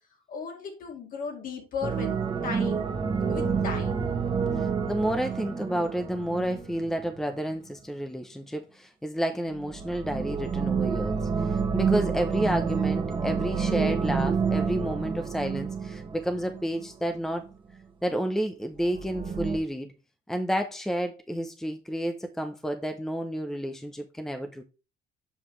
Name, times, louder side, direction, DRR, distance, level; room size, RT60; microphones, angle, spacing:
voice 1, 0.3-2.2 2.4-2.9 3.3-4.0, left 5 dB, 55° left, 2.2 m, -36 dB
sound 1, 1.8-7.2 9.5-16.9 18.8-19.6, right 6 dB, 30° right, 1.3 m, -28 dB
voice 2, 4.6-17.5 18.0-19.9 20.3-24.6, equal, 5° left, 0.7 m, -30 dB
7.1 x 5.4 x 3.2 m
cardioid pair, 110°, 17 cm